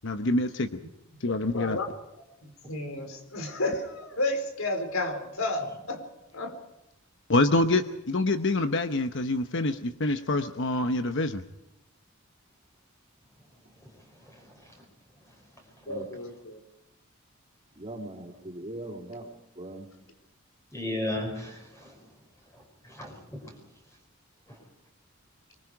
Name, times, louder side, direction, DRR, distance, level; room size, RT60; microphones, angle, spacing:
voice 1, 0.0-0.8 1.2-1.8 7.3-11.4, left 2 dB, 60° left, 9 dB, 1.0 m, -26 dB
voice 2, 1.3-1.8 2.4-6.0 6.3-6.5 15.9-16.6, left 2 dB, 85° left, 5 dB, 4.4 m, -32 dB
voice 3, 14.3-14.7 20.7-22.0 22.5-23.4, left 1 dB, 15° left, 1 dB, 5.7 m, -35 dB
voice 4, 17.8-19.3 19.6-19.9, right 1 dB, 30° right, 1 dB, 3.7 m, -40 dB
25.0 x 22.5 x 4.9 m, 0.93 s
head